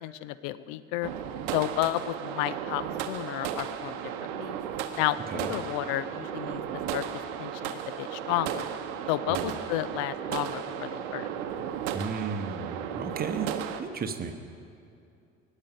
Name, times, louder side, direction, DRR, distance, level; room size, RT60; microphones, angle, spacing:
voice 1, 0.0-1.1 1.5-4.6 5.0-6.6 6.9-7.0 7.4-8.7 9.1-11.3, left 15 dB, 50° left, 16 dB, 0.5 m, -32 dB
sound 1, 1.0-13.8, right 9 dB, 55° right, 0.8 m, -35 dB
voice 2, 11.9-13.5 13.8-14.3, right 5 dB, 25° right, 8 dB, 1.0 m, -33 dB
19.5 x 7.3 x 5.4 m, 2.5 s
figure-of-eight pair, 60°, 37 cm